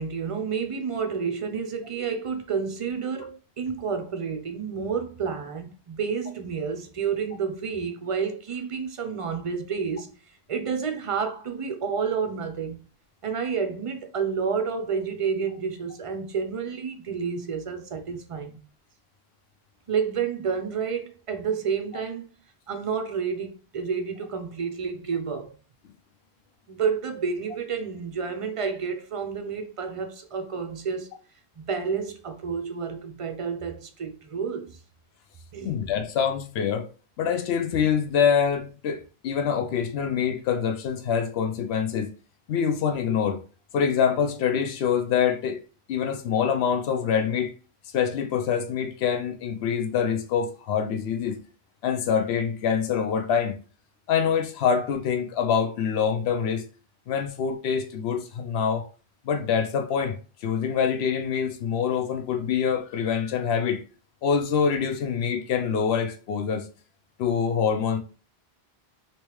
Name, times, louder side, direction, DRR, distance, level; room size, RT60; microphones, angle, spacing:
voice 1, 0.0-10.1 10.5-12.8 13.2-18.6 19.9-22.3 22.7-25.5 26.7-31.2 31.6-34.8 35.5-35.8, right 6 dB, 45° right, 0.5 m, -30 dB
voice 2, 35.6-36.9 37.2-42.1 42.5-43.4 43.7-45.6 45.9-47.5 47.9-51.4 51.8-53.6 54.1-56.6 57.1-58.8 59.2-60.2 60.4-63.8 64.2-66.7 67.2-68.0, left 7 dB, 80° left, 0.8 m, -25 dB
3.2 x 2.9 x 3.0 m
omnidirectional pair, 1.1 m